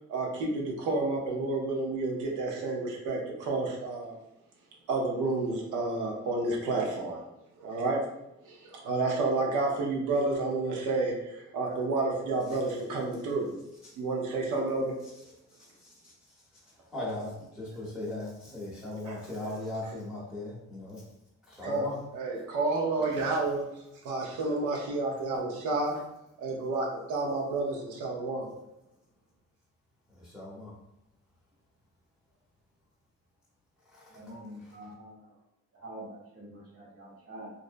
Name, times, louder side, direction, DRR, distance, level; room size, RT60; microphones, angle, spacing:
voice 1, 0.1-4.2 4.9-7.2 7.6-8.0 8.4-13.5 14.0-15.0 19.0-19.2 19.4-19.6 19.8-20.0 21.6-23.6 24.0-26.0 26.4-28.5, right 3 dB, 90° right, -1 dB, 0.7 m, -30 dB
voice 2, 16.9-17.3 17.6-21.0 21.6-21.9 30.3-30.7, left 1 dB, ahead, -7 dB, 0.7 m, -37 dB
voice 3, 34.1-35.3 35.7-37.5, right 1 dB, 50° right, -3 dB, 1.1 m, -46 dB
2.5 x 2.0 x 2.4 m, 0.85 s
cardioid pair, 90°, 30 cm